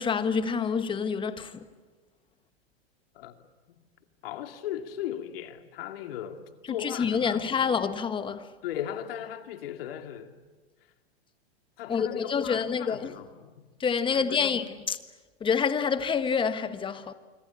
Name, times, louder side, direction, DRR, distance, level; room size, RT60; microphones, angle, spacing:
voice 1, 0.0-1.6 6.8-8.5 11.9-13.1 13.8-15.0 15.4-17.1, left 6 dB, 15° left, 1.4 m, -27 dB
voice 2, 4.2-7.6 8.6-10.4 11.8-13.7 14.1-14.8, left 10 dB, 65° left, 2.5 m, -38 dB
26.0 x 25.5 x 8.6 m
hypercardioid pair, 130°, 32 cm